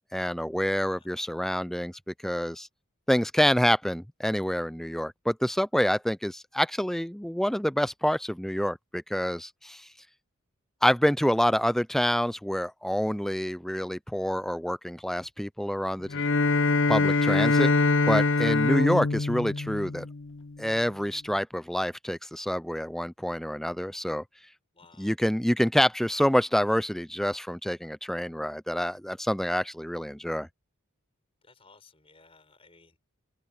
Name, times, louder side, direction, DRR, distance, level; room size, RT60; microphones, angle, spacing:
voice 1, 0.1-2.7 3.1-9.9 10.8-16.2 16.9-17.7 18.1-20.1 20.6-24.2 25.0-30.5, equal, ahead, 0.5 m, -27 dB
Bowed string instrument, 16.1-20.5, left 3 dB, 60° left, 0.7 m, -24 dB
voice 2, 24.7-25.1 31.4-33.1, left 4 dB, 25° left, 5.0 m, -58 dB
head